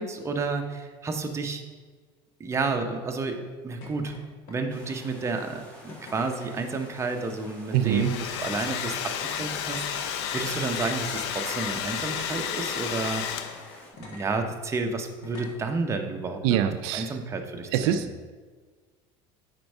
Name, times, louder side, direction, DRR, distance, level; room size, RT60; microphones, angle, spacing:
voice 1, 0.0-1.6 2.4-4.1 4.5-13.5 14.1-18.1, right 3 dB, 20° right, 4 dB, 0.7 m, -31 dB
sound 1, 3.8-4.2 4.5-4.9 5.9-6.6 7.6-7.8 8.3-8.8 9.5-9.6 10.3-11.2 12.1-12.7 14.0-14.3 15.2-15.7 16.8-16.9, left 3 dB, 70° left, 1.2 m, -46 dB
sound 2, 4.7-13.9, equal, 10° left, 1.5 m, -49 dB
Domestic sounds home sounds, 7.7-13.8, left 8 dB, 90° left, 0.5 m, -32 dB
voice 2, 7.7-8.1 16.4-17.2 17.7-18.3, right 10 dB, 75° right, 9 dB, 0.4 m, -25 dB
4.5 x 4.4 x 5.3 m, 1.4 s
supercardioid pair, 110°, 14 cm